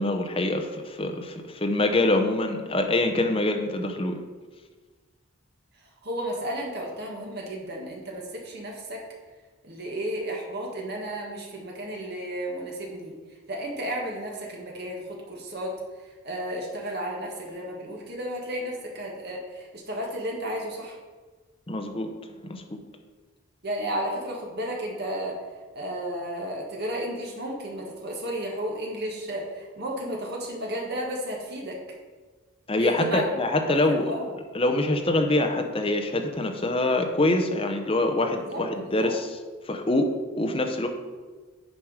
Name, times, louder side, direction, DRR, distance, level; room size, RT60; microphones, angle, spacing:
voice 1, 0.0-4.2 21.7-22.8 32.7-34.1 34.5-39.3 39.7-40.1 40.4-40.9, left 2 dB, 25° left, 4 dB, 0.7 m, -25 dB
voice 2, 6.0-9.0 9.6-13.1 13.5-21.0 23.6-25.4 25.7-31.8 32.8-34.3 38.5-39.1, right 1 dB, 45° right, -1 dB, 1.6 m, -33 dB
9.2 x 4.8 x 4.8 m, 1.4 s
head